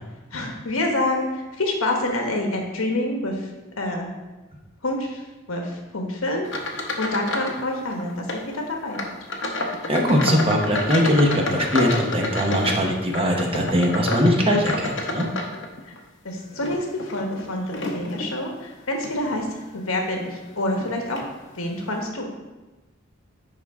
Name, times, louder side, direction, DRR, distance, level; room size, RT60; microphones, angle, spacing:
voice 1, 0.3-3.4 3.8-4.1 4.8-5.2 5.5-6.5 6.7-9.1 16.2-19.5 19.7-20.3 20.6-21.2 21.6-22.3, left 1 dB, 85° left, 2 dB, 1.2 m, -27 dB
sound 1, 6.4-7.6 7.9-8.4 8.9-16.0 16.5-18.3 19.0-19.2 19.8-19.9 20.8-20.9 21.2-21.3, left 2 dB, 65° left, 0.8 m, -29 dB
voice 2, 9.9-15.3, equal, 30° right, 0 dB, 1.0 m, -21 dB
10.5 x 3.7 x 3.6 m, 1.1 s
head